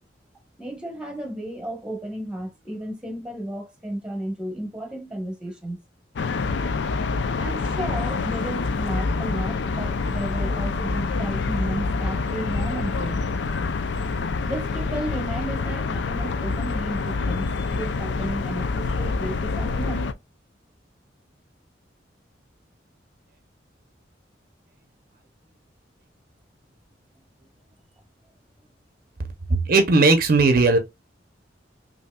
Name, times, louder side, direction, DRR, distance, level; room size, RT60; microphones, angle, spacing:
voice 1, 0.6-5.8 7.4-13.3 14.4-17.5 17.7-20.0, right 1 dB, 5° right, 1.0 m, -33 dB
sound 1, 6.2-20.1, left 4 dB, 70° left, 0.4 m, -26 dB
voice 2, 29.7-30.8, right 3 dB, 50° right, 0.6 m, -17 dB
5.4 x 2.6 x 2.2 m
head